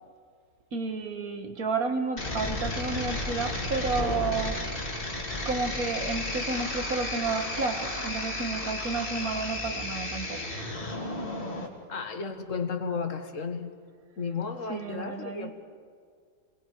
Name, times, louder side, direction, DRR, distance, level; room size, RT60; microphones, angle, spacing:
voice 1, 0.7-5.1 5.5-10.4 14.7-15.5, right 4 dB, 55° right, 6 dB, 2.0 m, -31 dB
sound 1, 2.2-11.7, left 2 dB, 30° left, 2.8 m, -33 dB
voice 2, 11.9-13.7 14.2-15.5, left 5 dB, 50° left, 6 dB, 1.7 m, -33 dB
29.5 x 22.5 x 4.7 m, 2.1 s
omnidirectional pair, 1.9 m